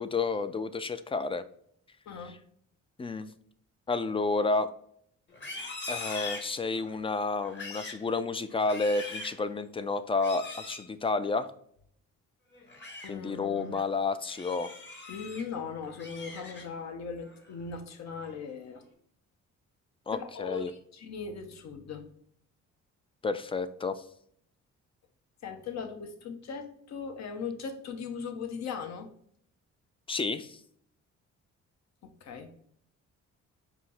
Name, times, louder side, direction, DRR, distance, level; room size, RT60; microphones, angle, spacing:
voice 1, 0.0-1.4 3.0-3.3 3.9-4.7 5.9-11.5 13.1-14.7 20.1-20.7 23.2-24.0 30.1-30.6, left 3 dB, 20° left, 12 dB, 0.3 m, -30 dB
voice 2, 2.1-2.4 13.0-13.8 15.1-18.8 20.1-22.1 25.4-29.1 32.0-32.5, left 5 dB, 60° left, 7 dB, 0.9 m, -39 dB
Livestock farm animals working animals, 5.3-7.0 7.4-8.0 8.5-9.4 10.2-10.8 12.5-13.1 13.6-13.8 14.3-15.4 15.8-16.9 17.3-17.6 18.0-18.4, left 3 dB, 35° left, 1.4 m, -42 dB
5.0 x 2.8 x 3.3 m, 0.66 s
cardioid pair, 90°, 30 cm